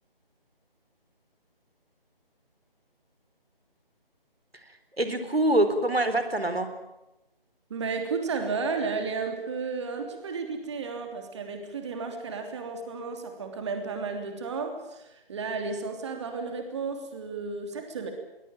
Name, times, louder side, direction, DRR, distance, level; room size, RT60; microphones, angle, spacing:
voice 1, 4.7-6.7, right 1 dB, 90° right, 9 dB, 4.0 m, -25 dB
voice 2, 7.7-18.1, right 4 dB, 30° right, 5 dB, 3.2 m, -33 dB
22.5 x 20.5 x 9.1 m, 0.95 s
figure-of-eight pair, 155°, 29 cm